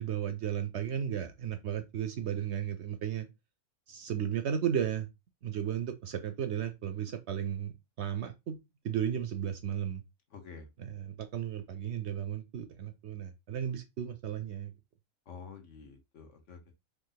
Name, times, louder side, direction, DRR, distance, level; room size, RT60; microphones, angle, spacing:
voice 1, 0.0-3.3 3.9-5.1 5.4-8.6 8.8-10.0 10.8-14.7, right 9 dB, 65° right, 0.8 m, -34 dB
voice 2, 10.3-10.7 15.3-16.7, left 5 dB, 60° left, 1.3 m, -48 dB
4.7 x 2.6 x 4.0 m
omnidirectional pair, 1.4 m